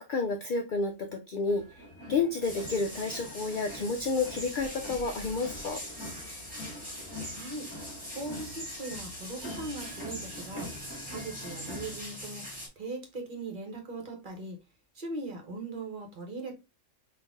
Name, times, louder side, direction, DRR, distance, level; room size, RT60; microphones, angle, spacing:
voice 1, 0.0-1.6 2.1-5.8, left 4 dB, 65° left, 0.5 m, -30 dB
sound 1, 1.5-11.9, left 1 dB, 15° left, 1.9 m, -45 dB
sound 2, 2.4-12.7, equal, 5° right, 1.9 m, -42 dB
voice 2, 7.3-7.7 8.1-10.7 11.1-12.4 12.8-14.6 14.9-16.5, right 2 dB, 45° right, 1.0 m, -39 dB
3.8 x 2.6 x 3.4 m
omnidirectional pair, 1.3 m